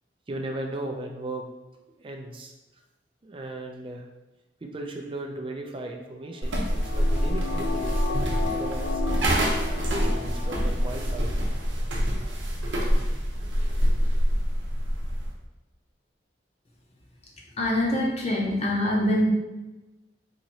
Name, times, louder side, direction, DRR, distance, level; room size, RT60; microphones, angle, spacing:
voice 1, 0.3-1.5 2.0-2.5 3.2-4.1 4.6-9.0 9.7-11.4, right 2 dB, 30° right, 2 dB, 0.4 m, -36 dB
sound 1, 6.3-11.1 11.4-11.5, left 4 dB, 60° left, 0.4 m, -34 dB
sound 2, 6.4-15.3, equal, 85° right, 0.7 m, -26 dB
voice 2, 17.6-19.3, left 1 dB, 35° left, -2 dB, 0.7 m, -24 dB
2.9 x 2.6 x 4.1 m, 1.1 s
head